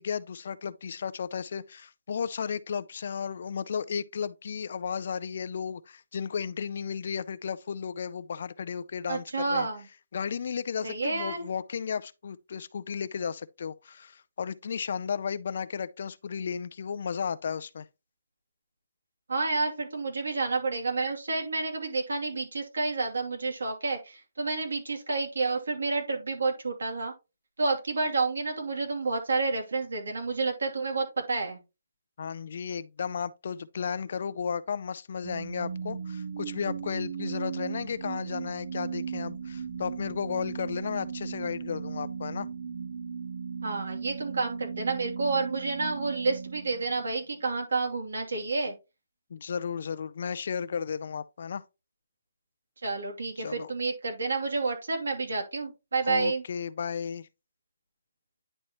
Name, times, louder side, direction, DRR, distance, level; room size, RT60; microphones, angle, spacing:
voice 1, 0.0-9.7 10.1-17.9 32.2-42.5 49.3-51.6 53.4-53.7 56.0-57.3, left 6 dB, 40° left, 0.3 m, -34 dB
voice 2, 9.1-9.8 10.8-11.5 19.3-27.1 27.6-31.6 43.6-48.7 52.8-56.4, right 3 dB, 85° right, 2.7 m, -30 dB
sound 1, 35.2-47.4, right 6 dB, 40° right, 0.6 m, -37 dB
9.9 x 4.2 x 3.0 m
hypercardioid pair, 180°, 0 cm